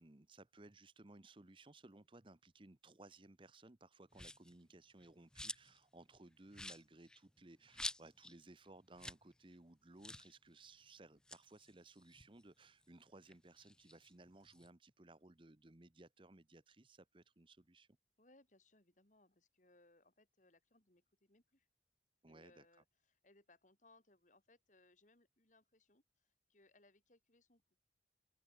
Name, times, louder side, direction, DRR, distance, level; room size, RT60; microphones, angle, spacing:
voice 1, 0.0-17.9 22.2-22.7, right 2 dB, 30° right, 0.9 m, -60 dB
sound 1, 4.1-4.6 5.0-5.8 6.1-6.2 6.5-8.4 8.7-8.8 9.0-9.3 9.5-9.6 10.0-10.3 11.1-12.8 13.2-14.7, left 1 dB, 5° left, 0.5 m, -49 dB
voice 2, 18.2-21.7 22.3-27.6, left 2 dB, 45° left, 2.9 m, -70 dB
open air
head